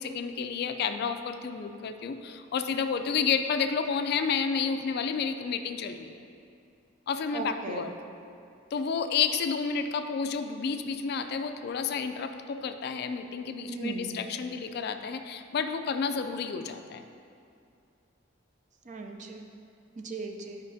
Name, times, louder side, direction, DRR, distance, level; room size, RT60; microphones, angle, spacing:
voice 1, 0.0-6.2 7.1-7.9 8.7-17.0, left 6 dB, 55° left, 8 dB, 0.3 m, -30 dB
voice 2, 7.3-7.9 13.7-14.2 18.9-19.4 20.0-20.6, right 3 dB, 40° right, 4 dB, 0.5 m, -37 dB
9.5 x 5.0 x 2.7 m, 2.5 s
head